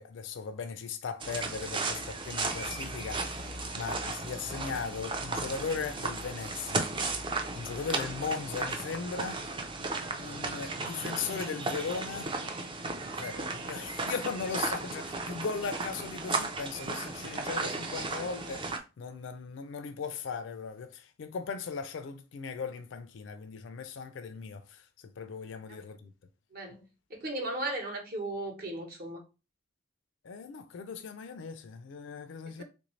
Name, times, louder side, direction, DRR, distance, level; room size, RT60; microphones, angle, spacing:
voice 1, 0.0-6.9 7.5-9.7 10.2-12.3 13.2-26.1 30.2-32.6, left 5 dB, 70° left, 0.4 m, -38 dB
sound 1, 1.2-18.8, right 3 dB, 25° right, 0.4 m, -35 dB
voice 2, 13.2-13.5 25.7-25.8 26.5-26.8 27.1-29.2 32.6-32.7, right 1 dB, 50° right, 1.0 m, -37 dB
3.5 x 2.5 x 3.1 m
head